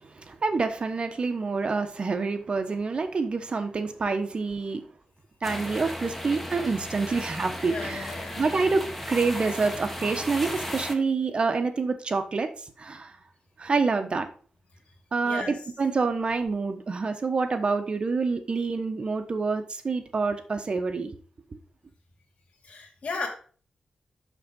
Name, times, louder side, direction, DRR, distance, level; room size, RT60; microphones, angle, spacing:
voice 1, 0.0-4.8 5.4-12.5 12.8-13.2 13.6-14.3 15.1-21.1, right 4 dB, 45° right, 1.1 m, -27 dB
sound 1, 5.4-11.0, equal, 5° left, 1.4 m, -35 dB
voice 2, 7.6-8.4 15.2-15.6 22.6-23.3, left 4 dB, 75° left, 2.5 m, -35 dB
6.6 x 6.5 x 5.3 m
wide cardioid pair, 115°, 3 cm